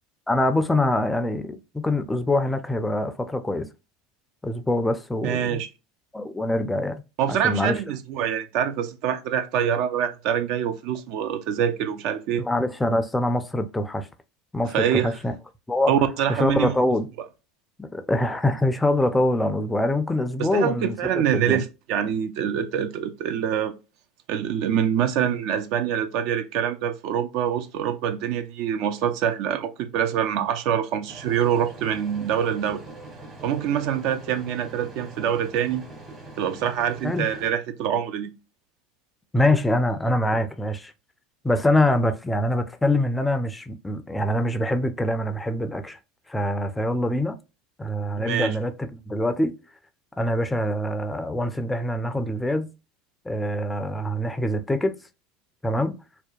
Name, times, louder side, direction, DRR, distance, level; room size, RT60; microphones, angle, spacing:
voice 1, 0.3-3.7 4.4-5.6 6.1-7.0 7.3-7.8 12.4-14.1 14.5-15.3 15.7-15.9 16.3-17.1 17.8-21.6 37.0-37.3 39.3-40.9 41.4-46.0 46.3-47.3 47.8-49.5 50.2-52.7 53.3-54.9 55.6-56.0, left 1 dB, 10° left, 0.4 m, -24 dB
voice 2, 5.2-5.7 7.2-12.4 14.7-15.1 15.9-16.7 20.5-23.7 24.3-32.8 33.4-35.8 36.4-38.3 48.2-48.5, right 9 dB, 60° right, 0.4 m, -25 dB
sound 1, 31.1-37.5, right 2 dB, 30° right, 0.9 m, -43 dB
2.7 x 2.1 x 2.3 m
hypercardioid pair, 80°, 0 cm